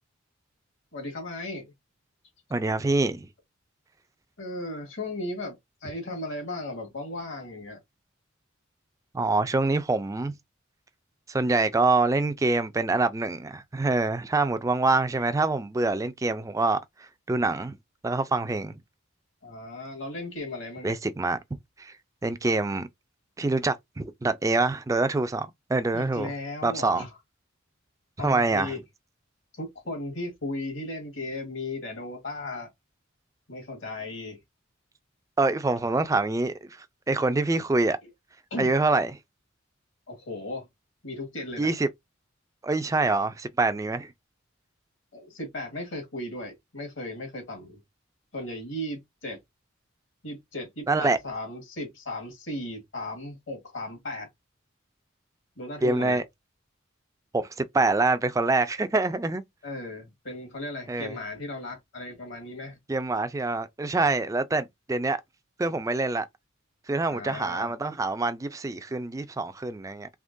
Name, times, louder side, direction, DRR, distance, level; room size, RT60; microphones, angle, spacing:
voice 1, 0.9-1.7 4.4-7.8 19.4-21.0 25.9-27.2 28.2-28.8 29.5-32.7 33.5-34.4 38.5-38.7 40.1-40.7 41.0-41.7 45.1-47.8 48.3-49.4 50.2-54.3 55.6-56.2 59.6-62.8 67.1-67.7, left 2 dB, 65° left, 1.5 m, -36 dB
voice 2, 2.5-3.3 9.1-10.3 11.3-16.8 17.3-17.8 18.0-18.7 20.8-21.4 21.8-21.9 22.2-22.9 23.4-26.3 26.6-27.1 28.2-28.7 35.4-36.5 37.1-38.0 38.6-39.2 41.6-41.9 42.6-44.1 50.9-51.2 55.8-56.2 57.3-59.4 60.9-61.2 62.9-65.2 65.6-66.3 66.9-70.1, right 3 dB, 15° right, 0.3 m, -25 dB
3.6 x 2.9 x 2.6 m
head